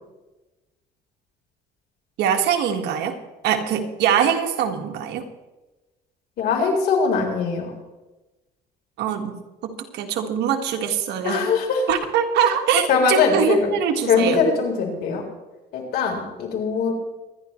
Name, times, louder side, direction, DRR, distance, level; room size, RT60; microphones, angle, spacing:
voice 1, 2.2-3.2 3.4-5.2 9.0-9.4 9.6-11.5 11.9-14.4, right 7 dB, 80° right, 4 dB, 1.7 m, -22 dB
voice 2, 6.4-7.7 11.2-11.8 12.9-13.7 14.1-15.2 15.7-16.9, left 5 dB, 70° left, 0 dB, 4.1 m, -21 dB
24.5 x 10.5 x 3.2 m, 1.1 s
cardioid pair, 110°, 17 cm